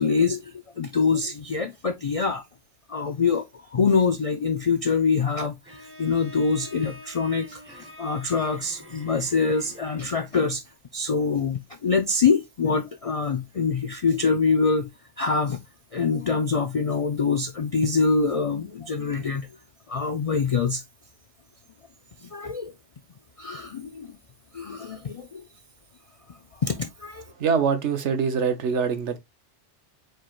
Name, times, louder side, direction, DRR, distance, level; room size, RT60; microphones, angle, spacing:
voice 1, 0.0-2.4 2.9-3.5 3.7-10.6 10.9-14.9 15.2-15.6 15.9-19.5 19.9-20.8 22.2-22.7 23.4-24.1 24.5-25.4 26.6-27.2, left 5 dB, 55° left, 0.3 m, -25 dB
Bowed string instrument, 5.7-10.5, left 1 dB, 15° right, 0.6 m, -46 dB
voice 2, 27.4-29.2, right 6 dB, 75° right, 1.1 m, -24 dB
4.8 x 4.4 x 2.4 m
omnidirectional pair, 1.2 m